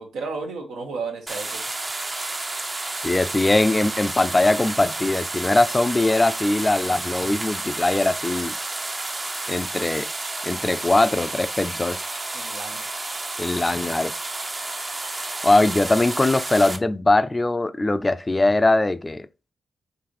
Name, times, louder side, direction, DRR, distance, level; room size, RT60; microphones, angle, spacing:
voice 1, 0.0-1.6 12.3-12.8, right 4 dB, 85° right, 0.9 m, -33 dB
sound 1, 1.3-16.8, right 2 dB, 35° right, 0.6 m, -31 dB
voice 2, 3.0-8.6 9.5-10.1 10.4-12.0 13.4-14.1 15.4-19.3, left 2 dB, 25° left, 0.4 m, -21 dB
3.9 x 2.7 x 3.0 m
supercardioid pair, 50°, 0 cm